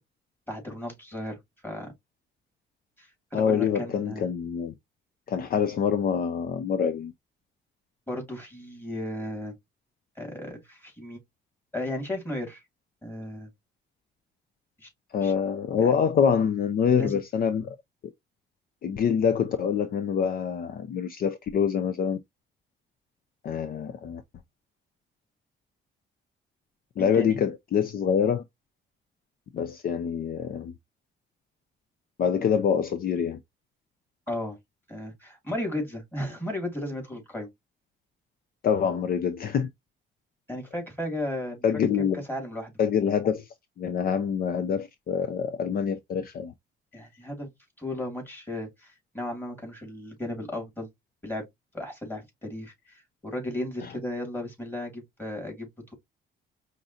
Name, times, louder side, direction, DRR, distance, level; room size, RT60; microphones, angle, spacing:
voice 1, 0.5-1.4 1.6-1.9 3.0-4.3 8.1-9.5 10.2-11.2 11.7-12.6 13.0-13.5 14.8-14.9 15.2-15.3 15.8-15.9 17.0-17.2 27.0-27.4 34.3-34.6 34.9-37.5 40.5-42.7 46.9-47.5 47.8-50.9 51.2-51.5 51.7-55.9, left 1 dB, 10° left, 2.4 m, -35 dB
voice 2, 3.3-4.7 5.3-7.1 15.1-17.8 18.8-22.2 23.4-24.2 27.0-28.4 29.5-30.7 32.2-33.4 38.6-39.7 41.6-42.2 42.8-46.5 53.8-53.9, left 7 dB, 50° left, 0.5 m, -25 dB
5.2 x 2.5 x 2.7 m
cardioid pair, 130°, 20 cm